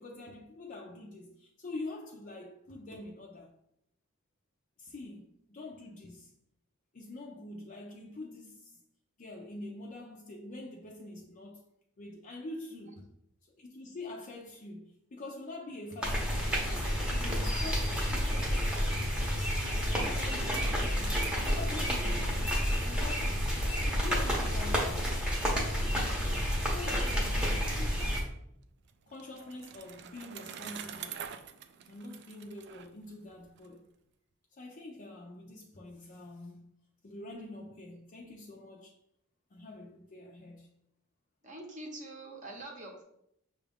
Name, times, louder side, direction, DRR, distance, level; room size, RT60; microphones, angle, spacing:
voice 1, 0.0-3.5 4.8-6.3 6.9-8.8 9.2-11.6 12.0-13.1 13.4-18.7 19.6-23.5 23.8-25.1 25.6-28.3 29.1-31.2 31.9-33.8 34.5-36.7 37.0-38.9 39.5-40.7, left 2 dB, 40° left, 0.5 m, -45 dB
sound 1, 16.0-28.2, equal, 5° right, 0.8 m, -30 dB
Bicycle, 28.6-33.7, right 8 dB, 55° right, 0.3 m, -46 dB
voice 2, 41.4-43.0, right 2 dB, 35° right, 0.8 m, -44 dB
6.1 x 2.4 x 3.4 m
head